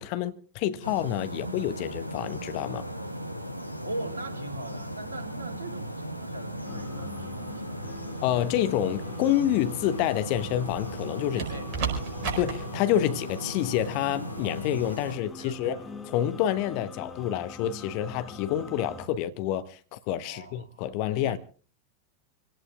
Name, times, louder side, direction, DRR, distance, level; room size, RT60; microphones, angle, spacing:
voice 1, 0.0-2.9 8.2-11.4 12.4-15.8 16.1-21.4, left 11 dB, 45° left, 0.9 m, -28 dB
sound 1, 0.8-15.2, equal, 90° left, 1.1 m, -37 dB
voice 2, 3.8-7.8 11.3-11.7 15.0-15.8 20.2-20.8 21.2-21.4, right 2 dB, 70° right, 2.8 m, -40 dB
sound 2, 6.6-19.1, left 4 dB, 15° left, 2.2 m, -44 dB
sound 3, 10.7-11.0 11.4-12.5 14.3-14.6, right 6 dB, 45° right, 5.0 m, -33 dB
27.5 x 17.5 x 2.4 m
figure-of-eight pair, 90°, 0 cm